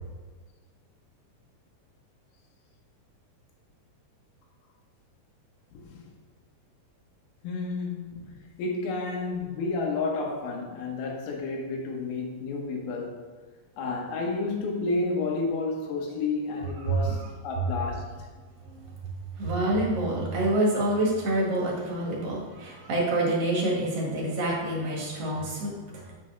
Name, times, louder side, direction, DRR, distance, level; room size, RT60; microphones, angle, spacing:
voice 1, 5.7-6.0 7.4-13.2 13.8-18.1, left 3 dB, 85° left, 0 dB, 3.1 m, -31 dB
voice 2, 19.4-26.1, right 1 dB, 50° right, -4 dB, 2.4 m, -27 dB
7.5 x 7.4 x 3.3 m, 1.4 s
omnidirectional pair, 4.2 m